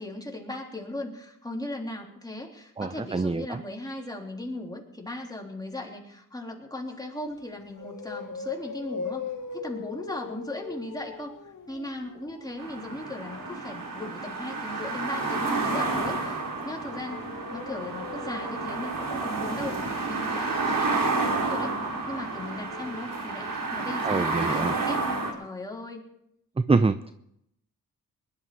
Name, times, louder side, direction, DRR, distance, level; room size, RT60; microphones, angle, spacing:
voice 1, 0.0-17.2 17.5-21.8 22.1-23.5 23.7-25.0 25.4-26.1, left 1 dB, 10° left, 0 dB, 3.6 m, -38 dB
voice 2, 2.8-3.6 24.0-24.8 26.6-27.1, right 3 dB, 15° right, 12 dB, 0.6 m, -25 dB
sound 1, 7.3-7.4 7.7-13.6 15.8-23.8 24.1-24.2 24.5-24.6, left 5 dB, 60° left, 2.8 m, -41 dB
sound 2, 12.6-25.3, right 3 dB, 70° right, 3.5 m, -30 dB
20.5 x 11.5 x 4.8 m, 0.77 s
cardioid pair, 70°, 34 cm